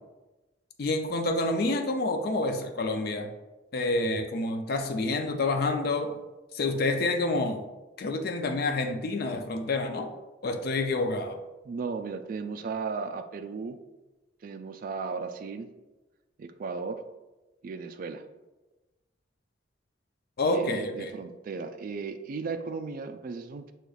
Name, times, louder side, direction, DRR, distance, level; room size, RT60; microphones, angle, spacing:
voice 1, 0.8-3.3 3.7-6.2 6.5-7.6 8.0-10.1 10.4-11.4 20.4-21.1, left 2 dB, 55° left, 6 dB, 0.4 m, -28 dB
voice 2, 11.6-13.8 14.4-15.7 16.4-17.0 17.6-18.2 20.5-23.7, right 4 dB, 50° right, 8 dB, 0.3 m, -35 dB
6.3 x 2.9 x 2.3 m, 1.1 s
head